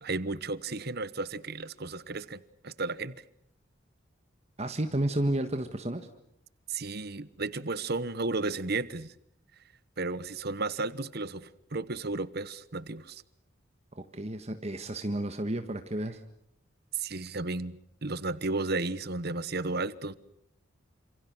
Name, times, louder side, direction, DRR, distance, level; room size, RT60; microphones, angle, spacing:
voice 1, 0.0-3.2 6.7-9.1 10.0-13.2 16.9-20.1, right 3 dB, 55° right, 1.2 m, -33 dB
voice 2, 4.6-6.1 13.9-16.2, right 1 dB, 35° right, 1.6 m, -31 dB
29.0 x 27.5 x 6.3 m
head